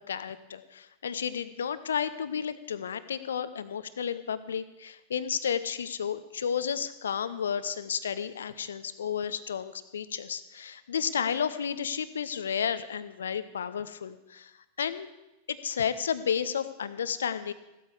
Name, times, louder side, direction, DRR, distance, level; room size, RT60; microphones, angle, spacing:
voice 1, 0.0-14.5 14.8-15.1 15.5-17.5, left 7 dB, 65° left, 14 dB, 0.8 m, -32 dB
16.0 x 12.5 x 4.8 m, 0.99 s
figure-of-eight pair, 90°, 0 cm